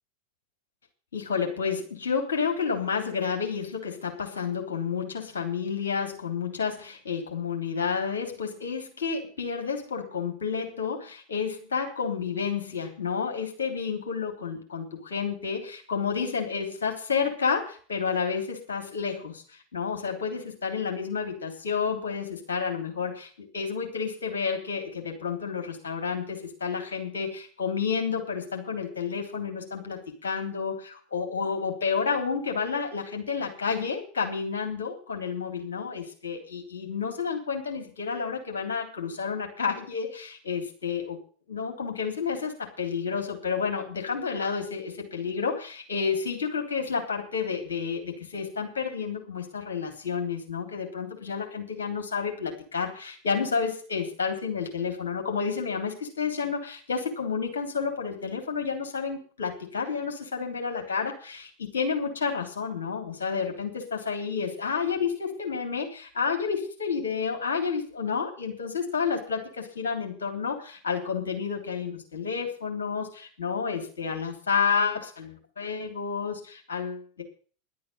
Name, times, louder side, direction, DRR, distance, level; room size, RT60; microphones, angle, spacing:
voice 1, 1.1-19.4 19.7-41.1 41.5-77.2, left 6 dB, 65° left, 3 dB, 3.3 m, -30 dB
11.0 x 8.6 x 8.8 m, 0.43 s
figure-of-eight pair, 85°, 0 cm